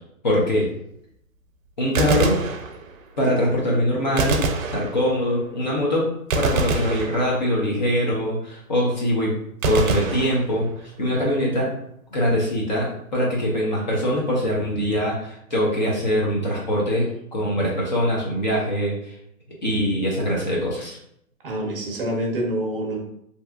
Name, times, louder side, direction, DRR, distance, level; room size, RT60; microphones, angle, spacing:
voice 1, 0.2-0.7 1.8-2.4 3.2-4.4 4.7-6.1 6.3-9.3 9.6-11.7 12.1-19.1 19.6-21.0, equal, 35° left, -3 dB, 0.6 m, -23 dB
Gunshot gunfire, 1.8-3.2 4.2-5.4 6.3-7.7 9.6-11.0, right 3 dB, 70° right, 0.5 m, -26 dB
voice 2, 21.4-23.0, right 1 dB, 40° right, -1 dB, 0.8 m, -26 dB
3.2 x 2.8 x 2.3 m, 0.73 s
hypercardioid pair, 165°, 41 cm